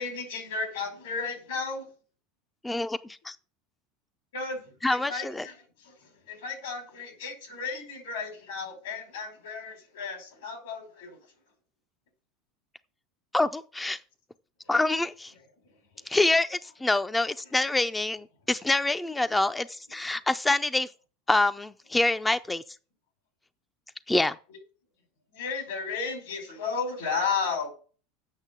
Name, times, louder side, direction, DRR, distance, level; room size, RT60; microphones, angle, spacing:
voice 1, 0.0-1.9 4.3-4.6 4.9-11.2 25.3-27.7, left 5 dB, 85° left, 4.7 m, -34 dB
voice 2, 2.6-3.4 4.8-5.5 13.3-14.0 14.7-15.3 16.1-20.9 21.3-22.6 24.1-24.3, left 2 dB, 10° left, 0.4 m, -26 dB
8.2 x 6.2 x 7.3 m
supercardioid pair, 140°, 0 cm